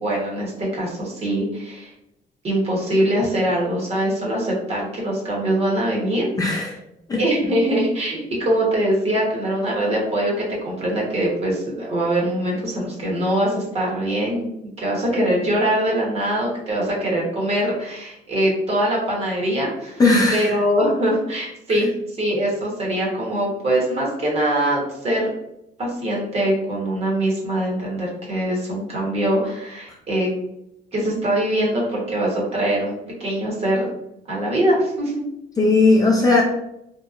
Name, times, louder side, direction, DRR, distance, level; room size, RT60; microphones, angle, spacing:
voice 1, 0.0-1.9 2.4-6.3 7.2-14.5 14.8-20.0 20.3-21.9 22.2-25.3 25.8-30.3 30.9-32.9 33.2-33.9 34.3-35.1, right 1 dB, 35° right, -3 dB, 1.0 m, -22 dB
voice 2, 6.4-6.8 7.1-7.2 20.0-20.6 35.6-36.4, left 3 dB, 20° left, -2 dB, 0.4 m, -17 dB
2.8 x 2.0 x 2.4 m, 0.83 s
cardioid pair, 110°, 17 cm